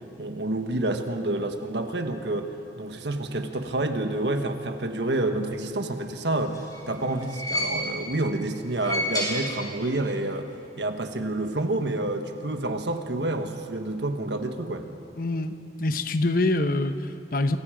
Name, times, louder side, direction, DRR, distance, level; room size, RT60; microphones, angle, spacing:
voice 1, 0.2-10.5 10.8-14.9, right 2 dB, 75° right, 6 dB, 1.5 m, -28 dB
sound 1, 6.2-8.2 8.6-10.1 10.3-10.4 11.5-11.6, left 1 dB, 20° left, 5.3 m, -31 dB
voice 2, 15.2-15.5 15.8-17.6, left 2 dB, 50° left, 9 dB, 1.0 m, -25 dB
28.0 x 24.0 x 5.1 m, 2.8 s
head